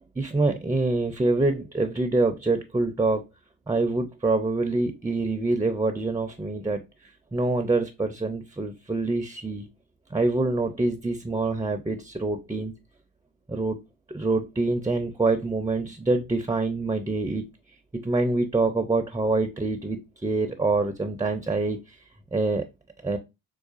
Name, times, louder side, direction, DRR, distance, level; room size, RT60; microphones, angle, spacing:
voice 1, 0.2-3.2 3.7-6.8 7.3-9.7 10.1-12.7 13.5-13.8 14.1-17.4 18.0-21.8 22.3-22.7 23.0-23.2, right 3 dB, 10° right, 7 dB, 0.4 m, -25 dB
4.7 x 2.3 x 2.4 m, 0.24 s
supercardioid pair, 70°, 47 cm